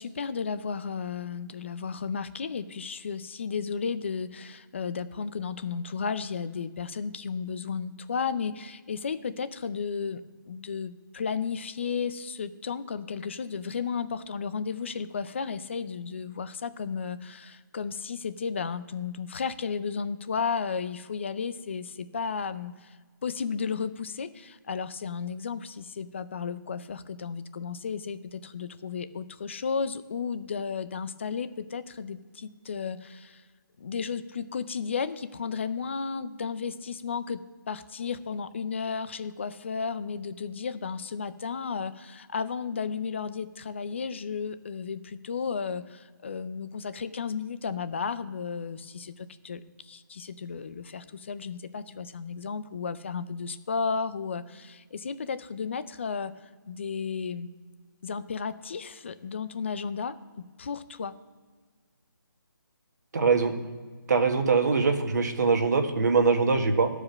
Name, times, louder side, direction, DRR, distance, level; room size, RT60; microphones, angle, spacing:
voice 1, 0.0-23.0 23.2-33.4 33.8-37.4 37.7-56.3 56.7-57.5 58.0-61.1, left 5 dB, 35° left, 15 dB, 0.5 m, -33 dB
voice 2, 63.1-63.5 64.1-66.9, right 4 dB, 50° right, 5 dB, 1.5 m, -23 dB
12.5 x 5.0 x 6.4 m, 1.5 s
hypercardioid pair, 165°, 12 cm